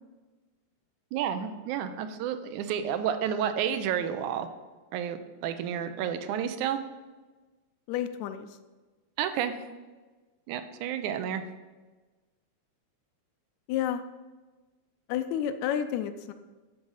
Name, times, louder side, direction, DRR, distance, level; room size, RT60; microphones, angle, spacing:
voice 1, 1.1-4.5 4.9-6.8 9.2-9.5 10.5-11.4, right 9 dB, 90° right, 9 dB, 2.1 m, -30 dB
voice 2, 7.9-8.5 13.7-14.0 15.1-16.3, left 10 dB, 80° left, 9 dB, 1.8 m, -30 dB
11.0 x 3.8 x 6.3 m, 1.3 s
omnidirectional pair, 3.4 m